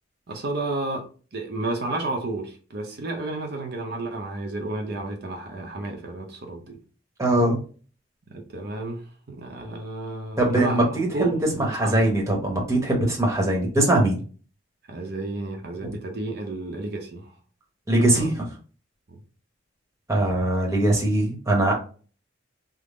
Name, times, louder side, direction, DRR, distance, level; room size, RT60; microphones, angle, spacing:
voice 1, 0.3-1.0 1.3-6.8 8.3-12.1 14.9-17.3 18.0-18.3 19.1-19.2, right 2 dB, 60° right, 2 dB, 0.7 m, -31 dB
voice 2, 7.2-7.6 10.4-11.3 11.6-14.2 17.9-18.5 20.1-21.7, right 1 dB, 15° right, -1 dB, 1.0 m, -21 dB
3.6 x 2.0 x 3.7 m, 0.38 s
head